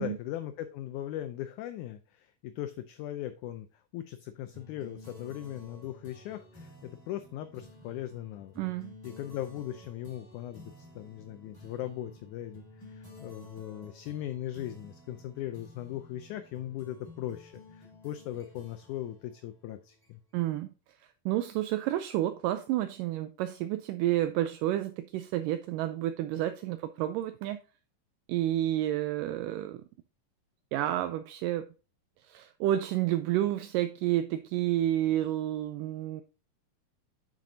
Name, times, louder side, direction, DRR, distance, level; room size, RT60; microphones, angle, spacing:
voice 1, 0.0-3.7 3.9-8.5 9.0-20.2, left 12 dB, 80° left, 10 dB, 1.8 m, -39 dB
sound 1, 4.5-20.4, left 1 dB, 10° left, 1.7 m, -53 dB
voice 2, 8.6-8.9 20.3-20.7 21.3-27.6 28.3-29.8 30.7-31.7 32.3-36.2, right 13 dB, 80° right, 10 dB, 2.1 m, -30 dB
7.7 x 7.5 x 2.7 m, 0.34 s
omnidirectional pair, 4.0 m